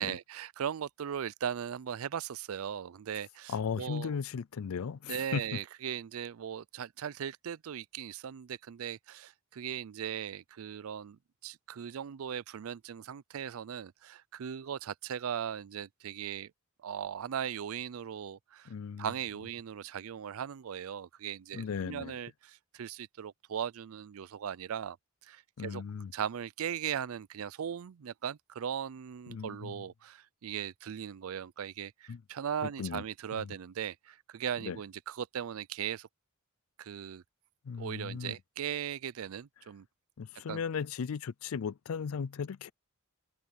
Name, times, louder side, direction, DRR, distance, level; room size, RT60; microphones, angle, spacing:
voice 1, 0.0-4.2 5.1-16.5 16.8-25.0 25.2-25.8 26.1-36.1 36.8-37.2 37.8-39.9 40.5-40.6, right 8 dB, 70° right, 0.4 m, -38 dB
voice 2, 3.5-5.6 18.7-19.1 21.5-22.1 25.6-26.1 29.3-29.7 32.1-32.2 32.8-33.0 33.3-33.5 34.7-34.8 37.7-38.3 40.2-42.7, left 6 dB, 70° left, 0.4 m, -36 dB
open air
head